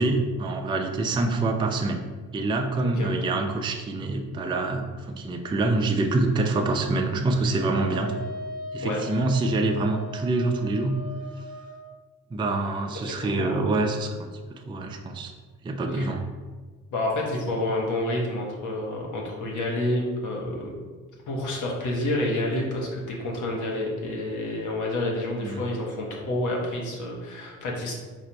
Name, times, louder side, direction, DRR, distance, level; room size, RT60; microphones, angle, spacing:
voice 1, 0.0-2.0 2.3-8.1 8.7-11.0 12.3-15.3 15.6-16.3 25.4-25.6, right 2 dB, 15° right, 3 dB, 0.4 m, -26 dB
Wind instrument woodwind instrument, 7.5-11.9, left 1 dB, ahead, 1.0 m, -38 dB
voice 2, 13.0-13.6 15.9-16.1 16.9-20.7 21.3-27.9, left 1 dB, 75° left, -2 dB, 1.2 m, -29 dB
4.3 x 2.5 x 4.5 m, 1.4 s
cardioid pair, 90°, 30 cm